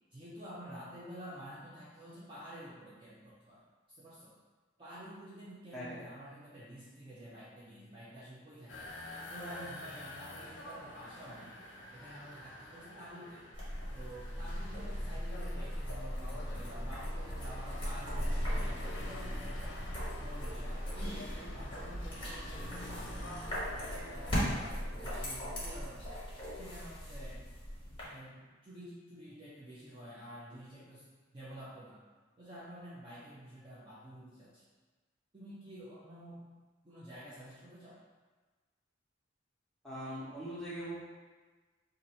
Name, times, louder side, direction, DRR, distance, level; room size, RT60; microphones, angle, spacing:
voice 1, 0.1-3.6 3.9-4.3 4.8-8.9 9.3-11.6 11.9-13.5 13.9-19.8 20.2-23.8 24.1-26.1 26.5-27.4 28.1-32.0 32.4-34.6 35.3-36.5 36.8-38.0, equal, 25° right, -9 dB, 0.6 m, -50 dB
sound 1, 8.7-24.7, left 1 dB, 75° left, 0.5 m, -48 dB
sound 2, 13.5-28.0, equal, 30° left, 1.1 m, -38 dB
voice 2, 39.8-40.9, equal, ahead, -10 dB, 1.0 m, -41 dB
2.7 x 2.6 x 4.2 m, 1.3 s
head